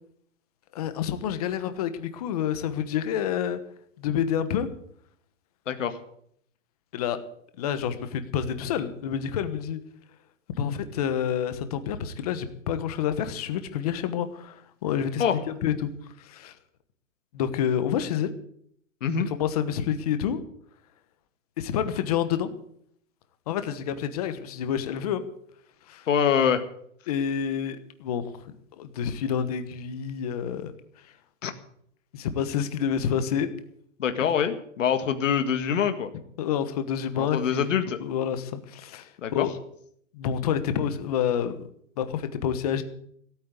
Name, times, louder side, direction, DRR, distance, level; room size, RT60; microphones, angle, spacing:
voice 1, 0.7-3.6 4.0-4.7 6.9-7.2 7.6-9.8 10.5-15.2 15.6-15.9 16.2-16.5 17.3-18.3 19.3-20.4 21.6-22.5 23.5-25.2 25.9-26.1 27.1-30.7 32.1-33.5 36.4-37.7 38.0-39.5 40.1-41.6 42.0-42.8, left 8 dB, 30° left, 11 dB, 1.2 m, -28 dB
voice 2, 5.7-6.0 15.2-15.4 19.0-19.3 26.1-26.6 31.4-31.5 34.0-36.1 37.2-38.0 39.2-39.5, left 8 dB, 75° left, 8 dB, 2.0 m, -24 dB
16.5 x 9.2 x 8.3 m, 0.67 s
hypercardioid pair, 175°, 38 cm